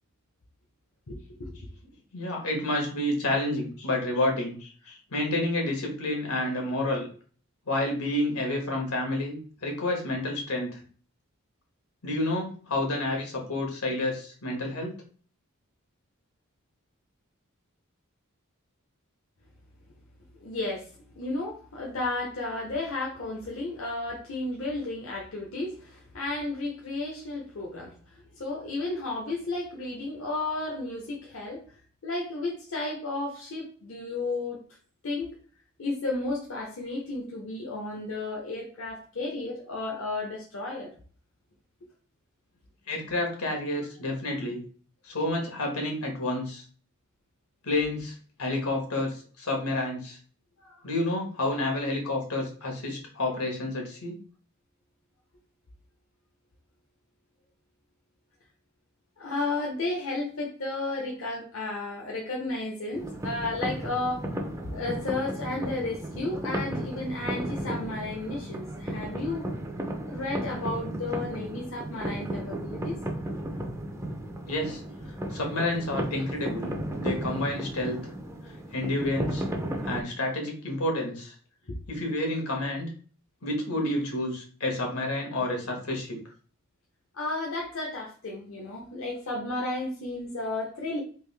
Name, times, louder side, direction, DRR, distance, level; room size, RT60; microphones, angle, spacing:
voice 1, 1.1-1.6 20.4-20.9 21.2-31.6 32.0-34.6 35.0-35.3 35.8-40.9 50.6-50.8 59.2-64.3 64.7-69.5 70.1-73.0 81.7-81.8 87.1-91.0, left 2 dB, 65° left, -2 dB, 0.7 m, -33 dB
voice 2, 2.1-7.1 7.7-10.8 12.0-14.9 42.9-44.6 45.0-46.6 47.6-50.2 50.8-54.2 74.5-74.8 75.1-76.7 77.0-78.1 78.7-79.4 79.8-81.3 81.9-82.9 83.4-86.2, left 1 dB, 90° left, 1 dB, 1.3 m, -29 dB
sound 1, 62.9-80.0, right 1 dB, 15° right, 0.4 m, -34 dB
3.5 x 2.6 x 3.3 m, 0.43 s
head